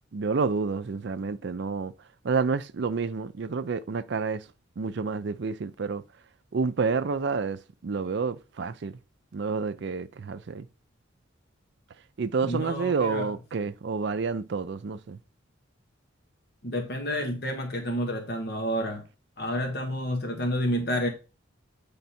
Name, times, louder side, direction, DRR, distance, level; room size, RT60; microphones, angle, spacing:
voice 1, 0.1-1.9 2.2-4.5 4.8-6.0 6.5-9.0 9.3-10.7 12.2-15.2, right 4 dB, 60° right, 0.4 m, -29 dB
voice 2, 12.4-13.3 16.6-19.0 19.4-21.1, equal, 50° left, 1.2 m, -29 dB
8.1 x 3.5 x 4.3 m
head